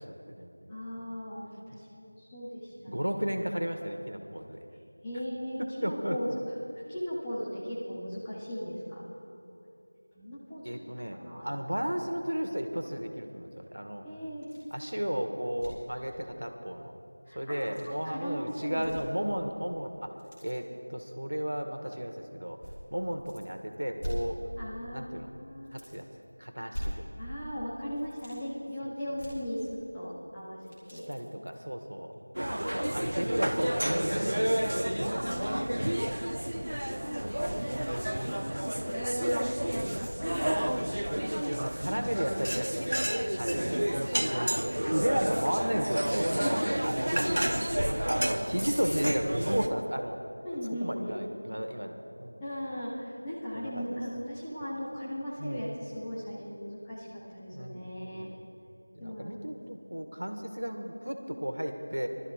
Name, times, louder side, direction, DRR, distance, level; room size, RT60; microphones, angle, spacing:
voice 1, 0.0-0.7 1.0-1.2 2.9-4.6 5.6-6.2 10.6-14.0 14.7-16.9 17.3-20.1 20.4-22.6 22.9-24.4 24.9-25.3 25.7-26.1 26.4-27.0 28.8-28.9 30.9-34.7 35.4-38.6 40.9-41.1 41.6-44.4 44.8-47.4 48.1-50.2 50.8-52.4 53.5-54.0 55.4-55.6 57.5-58.4 58.9-62.1, equal, 90° right, 5 dB, 1.2 m, -34 dB
voice 2, 0.7-3.1 5.0-6.3 6.9-9.0 9.3-9.4 10.1-10.7 11.2-11.5 14.0-14.5 17.3-18.9 24.6-25.1 25.4-25.9 26.6-26.8 27.2-29.7 29.9-30.6 30.9-31.1 32.8-33.5 34.7-35.7 36.6-37.4 38.2-38.4 38.8-40.9 43.5-43.7 44.2-44.4 46.3-46.6 47.2-47.3 47.7-47.8 50.4-51.2 52.4-58.3 59.0-59.6, equal, 5° left, -10 dB, 0.6 m, -38 dB
sound 1, 14.4-14.8 15.1-15.2 15.5-15.9 17.4-17.9 18.7-19.3 19.7-20.6 21.4-21.5 22.6-23.5 23.7-24.9 25.2-25.3 25.6-26.2 26.7-27.5 27.9-28.4 29.1-30.1 30.4-31.6 32.1-32.2 32.7-32.8, equal, 25° left, 2.8 m, -41 dB
sound 2, 32.3-49.7, equal, 70° right, 0.6 m, -30 dB
23.5 x 12.5 x 2.4 m, 2.7 s
figure-of-eight pair, 180°, 0 cm